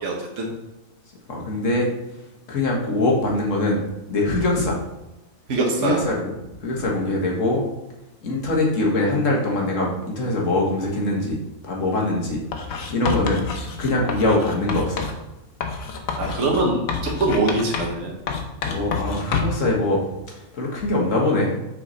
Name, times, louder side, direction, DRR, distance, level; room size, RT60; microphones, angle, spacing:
voice 1, 0.0-0.5 5.5-6.0 16.2-18.1, right 2 dB, 60° right, 0 dB, 1.5 m, -23 dB
voice 2, 1.3-1.9 2.5-3.8 4.1-4.8 5.8-6.2 6.6-7.6 8.2-12.4 12.7-15.1 18.6-20.0 20.4-21.5, left 2 dB, 70° left, -2 dB, 1.8 m, -23 dB
Writing, 12.5-15.2 15.6-18.0 18.3-19.7, left 5 dB, 90° left, 1.3 m, -28 dB
6.3 x 5.6 x 4.1 m, 1.0 s
omnidirectional pair, 1.4 m